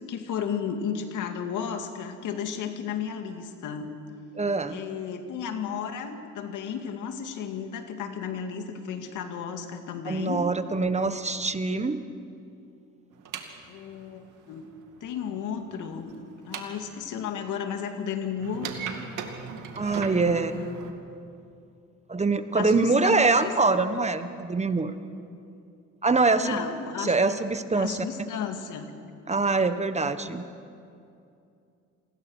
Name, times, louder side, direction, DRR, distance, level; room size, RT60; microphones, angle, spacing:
voice 1, 0.0-3.9 4.7-10.4 13.6-14.6 15.0-16.1 16.4-18.7 20.2-20.8 22.5-23.5 26.4-27.2 27.7-28.9, left 7 dB, 85° left, 6 dB, 2.2 m, -33 dB
voice 2, 4.4-4.8 10.1-12.0 19.7-20.5 22.1-25.0 26.0-26.6 27.0-28.3 29.3-30.4, right 3 dB, 20° right, 10 dB, 1.3 m, -24 dB
sound 1, 13.1-17.2 18.4-20.9, right 6 dB, 80° right, 2.4 m, -39 dB
28.0 x 20.5 x 6.4 m, 2.5 s
cardioid pair, 90°, 30 cm